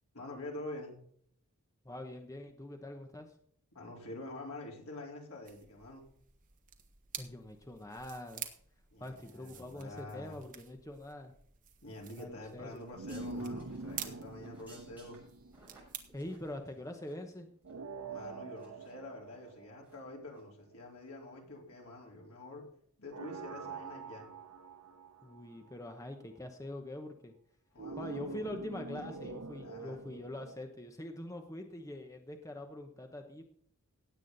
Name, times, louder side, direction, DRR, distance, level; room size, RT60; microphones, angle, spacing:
voice 1, 0.1-1.0 3.7-6.1 8.9-10.4 11.8-15.2 18.1-22.7 23.0-24.3 27.7-28.5 28.9-30.0, left 2 dB, 75° left, -1 dB, 4.1 m, -47 dB
voice 2, 1.8-3.3 7.2-8.5 9.0-11.3 12.2-12.9 16.1-17.5 25.2-27.3 28.0-33.4, left 1 dB, 15° left, 4 dB, 1.0 m, -44 dB
sound 1, 5.4-16.6, right 9 dB, 40° right, 1.4 m, -50 dB
sound 2, 12.7-17.4 17.6-17.7 18.2-18.9 19.3-19.5 19.8-20.0 20.3-20.4, right 2 dB, 10° right, 6.5 m, -61 dB
sound 3, 12.9-16.3 17.6-20.5 23.1-25.7 27.8-30.6, right 3 dB, 90° right, 0.9 m, -45 dB
17.5 x 8.4 x 4.1 m, 0.62 s
head